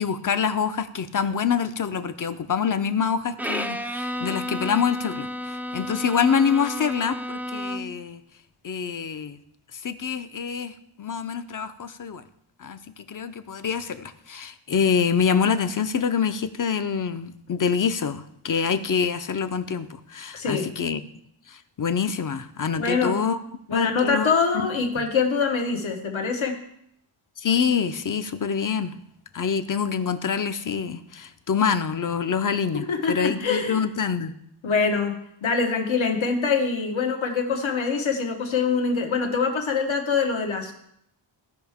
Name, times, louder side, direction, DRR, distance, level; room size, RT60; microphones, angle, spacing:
voice 1, 0.0-8.2 8.6-9.4 9.7-10.7 11.0-12.2 12.6-12.8 13.1-21.0 21.5-23.4 23.7-24.3 25.0-25.1 27.4-29.0 29.3-34.3, left 6 dB, 45° left, 11 dB, 0.6 m, -26 dB
Bowed string instrument, 3.4-8.1, equal, 5° right, 0.3 m, -32 dB
voice 2, 20.3-20.7 22.8-23.2 23.7-26.6 32.7-33.8 34.6-40.7, left 5 dB, 75° left, 3 dB, 1.3 m, -24 dB
15.5 x 5.5 x 3.6 m, 0.74 s
wide cardioid pair, 125°, 47 cm